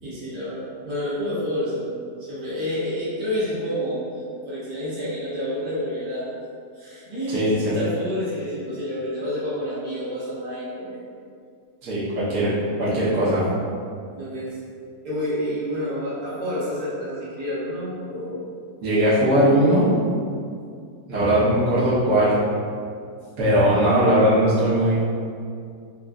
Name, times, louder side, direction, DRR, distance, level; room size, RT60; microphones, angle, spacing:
voice 1, 0.0-1.9 2.2-6.3 6.7-11.0 14.1-14.6 15.0-18.4, equal, 85° right, -10 dB, 1.6 m, -29 dB
voice 2, 7.3-7.7 11.8-13.4 18.8-20.0 21.1-22.4 23.4-25.0, right 1 dB, 65° right, -11 dB, 1.4 m, -19 dB
4.1 x 2.4 x 2.4 m, 2.3 s
omnidirectional pair, 1.7 m